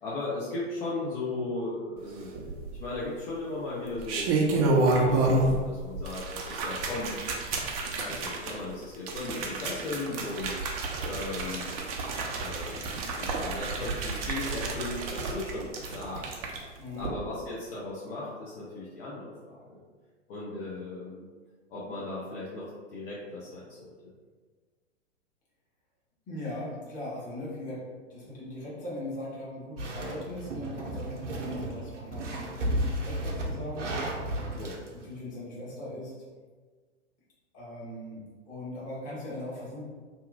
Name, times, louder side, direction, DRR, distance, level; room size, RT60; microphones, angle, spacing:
voice 1, 0.0-2.3 2.8-7.2 8.0-10.6 11.0-11.7 12.4-16.5 17.0-19.8 20.3-21.3 21.7-24.1 34.6-34.8, left 2 dB, 50° left, -6 dB, 0.7 m, -37 dB
sound 1, 2.3-3.0 3.8-5.7 5.9-16.6 17.0-17.1, right 2 dB, 30° right, 0.4 m, -29 dB
voice 2, 16.8-17.2 26.3-27.8 28.1-33.9 34.9-36.1 37.5-39.9, left 1 dB, 20° left, -8 dB, 1.1 m, -39 dB
sound 2, 29.8-34.9, right 1 dB, 75° right, 0.6 m, -33 dB
2.8 x 2.5 x 2.4 m, 1.5 s
figure-of-eight pair, 105°, 36 cm